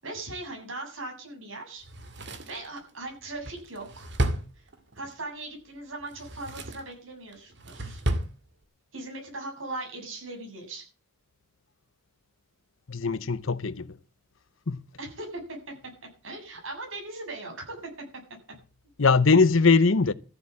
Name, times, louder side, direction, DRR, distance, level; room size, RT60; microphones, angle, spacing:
voice 1, 0.0-1.8 2.5-4.1 4.6-4.7 4.9-8.0 8.9-10.8 15.0-15.7 16.2-17.8, right 2 dB, 75° right, 7.6 m, -39 dB
Drawer open or close, 1.8-5.1 6.0-6.9 7.3-8.3 8.6-8.7, right 1 dB, 55° right, 2.2 m, -32 dB
voice 2, 12.9-13.9 14.7-14.8 19.0-20.1, left 4 dB, 75° left, 0.8 m, -21 dB
14.5 x 8.1 x 8.6 m
head